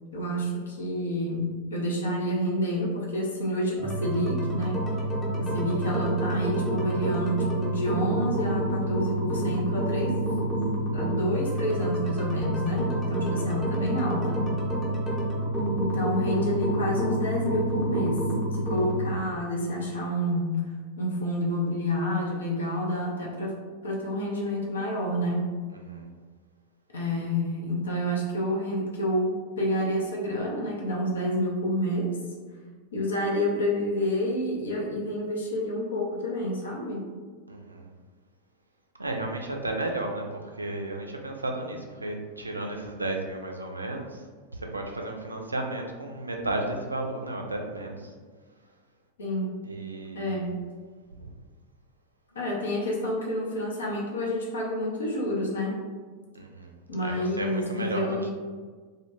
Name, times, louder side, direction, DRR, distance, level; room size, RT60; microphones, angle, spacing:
voice 1, 0.1-4.8 5.4-10.2 10.5-14.5 15.7-20.6 21.0-23.6 23.8-25.5 26.9-32.2 32.9-37.1 49.2-49.6 50.1-50.5 52.3-55.8 56.9-58.3, equal, 65° left, -2 dB, 0.5 m, -29 dB
sound 1, 3.8-19.1, right 1 dB, 5° left, 0.7 m, -28 dB
voice 2, 37.5-37.9 39.0-44.1 44.7-48.0 49.6-50.5 51.2-51.3 56.3-56.7 57.0-58.3, right 2 dB, 80° right, 2 dB, 0.3 m, -33 dB
2.2 x 2.1 x 3.0 m, 1.5 s
figure-of-eight pair, 90°, 0 cm